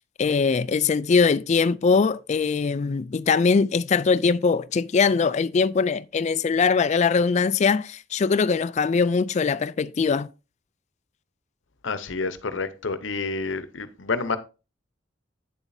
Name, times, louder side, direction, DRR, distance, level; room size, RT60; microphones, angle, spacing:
voice 1, 0.2-10.3, left 5 dB, 35° left, 0.3 m, -21 dB
voice 2, 11.8-14.4, left 4 dB, 70° left, 0.8 m, -29 dB
9.3 x 7.1 x 2.7 m
head